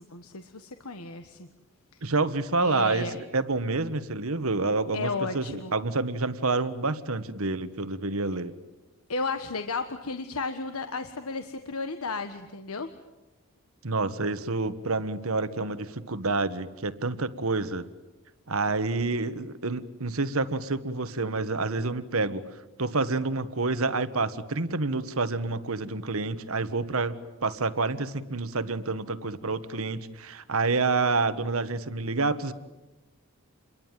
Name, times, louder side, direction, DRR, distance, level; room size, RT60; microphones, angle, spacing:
voice 1, 0.0-1.5 1.9-2.0 2.6-3.2 4.9-5.7 9.1-12.9, left 4 dB, 90° left, 8 dB, 1.4 m, -33 dB
voice 2, 2.0-8.5 13.8-17.9 18.5-22.4 22.8-32.5, right 3 dB, 80° right, 12 dB, 1.5 m, -28 dB
29.0 x 22.5 x 9.2 m, 1.1 s
head